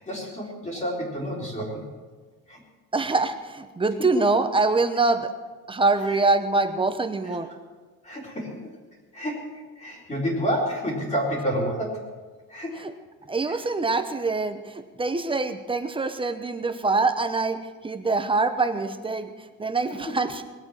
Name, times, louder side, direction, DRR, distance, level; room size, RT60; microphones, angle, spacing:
voice 1, 0.0-1.8 2.5-2.6 4.1-4.3 6.1-6.2 7.2-7.4 8.0-8.6 9.1-12.1 12.5-12.8 13.5-13.6 19.9-20.1, equal, 20° left, -2 dB, 4.4 m, -29 dB
voice 2, 2.9-5.3 5.7-7.5 12.8-12.9 13.3-19.3 19.6-20.4, right 3 dB, 15° right, 8 dB, 0.9 m, -24 dB
20.0 x 8.8 x 7.5 m, 1.4 s
cardioid pair, 160°, 35 cm